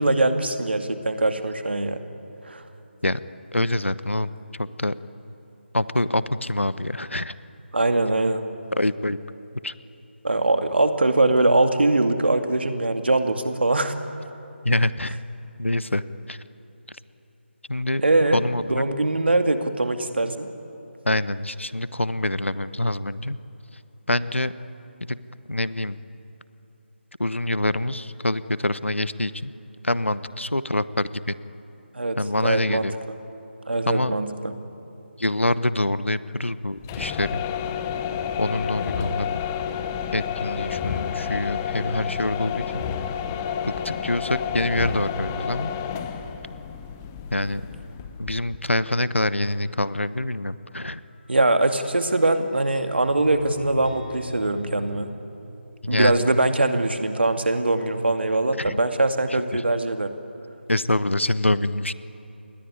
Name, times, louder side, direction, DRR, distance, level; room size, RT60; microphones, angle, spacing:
voice 1, 0.0-2.0 2.5-2.6 7.7-8.4 10.2-13.9 18.0-18.4 18.7-20.5 31.9-32.9 33.7-34.5 51.3-55.1 55.9-60.1, right 2 dB, 60° right, 7 dB, 2.3 m, -22 dB
voice 2, 3.5-4.3 4.6-4.9 5.7-7.3 8.7-9.2 9.6-9.7 14.6-15.2 15.6-16.0 16.3-16.4 17.7-18.0 18.3-18.8 21.0-23.4 24.1-24.5 25.0-25.2 25.5-26.0 27.2-29.5 29.8-31.3 32.2-32.9 33.9-34.1 35.2-37.4 38.4-39.4 40.1-42.9 43.6-45.7 47.3-47.6 48.2-51.0 55.8-56.2 58.6-58.8 59.5-59.6 60.7-61.9, left 1 dB, 80° left, 15 dB, 1.1 m, -25 dB
sound 1, 36.8-48.7, left 8 dB, 10° left, 0.8 m, -30 dB
sound 2, 51.1-55.1, left 2 dB, 40° left, 3.1 m, -41 dB
29.0 x 21.0 x 9.7 m, 3.0 s
figure-of-eight pair, 160°, 7 cm